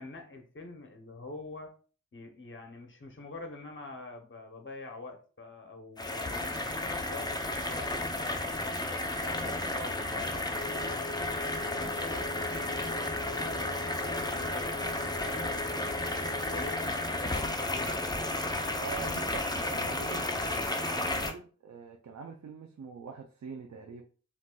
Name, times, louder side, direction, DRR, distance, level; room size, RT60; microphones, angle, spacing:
voice 1, 0.0-1.8 2.1-6.7 7.1-8.8 9.2-11.0 11.5-15.8 16.2-18.4 19.0-19.1 19.7-20.6, left 3 dB, 40° left, 4 dB, 0.8 m, -46 dB
sound 1, 6.0-21.3, left 2 dB, 15° left, 0.5 m, -33 dB
Wind instrument woodwind instrument, 10.5-16.9, left 2 dB, 75° left, 0.5 m, -42 dB
voice 2, 18.8-20.3 20.9-24.0, right 5 dB, 65° right, 3 dB, 0.5 m, -44 dB
3.9 x 2.5 x 2.2 m, 0.38 s
wide cardioid pair, 55°, 31 cm